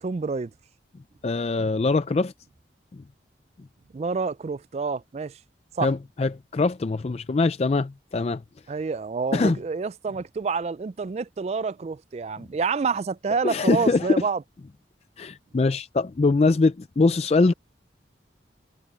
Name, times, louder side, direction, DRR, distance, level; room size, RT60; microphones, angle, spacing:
voice 1, 0.0-0.5 3.9-5.4 5.8-5.9 8.7-14.4, right 4 dB, 35° right, 0.3 m, -28 dB
voice 2, 1.2-2.3 2.9-3.0 5.8-8.4 9.3-9.6 13.4-14.1 15.2-17.5, left 3 dB, 35° left, 0.4 m, -23 dB
head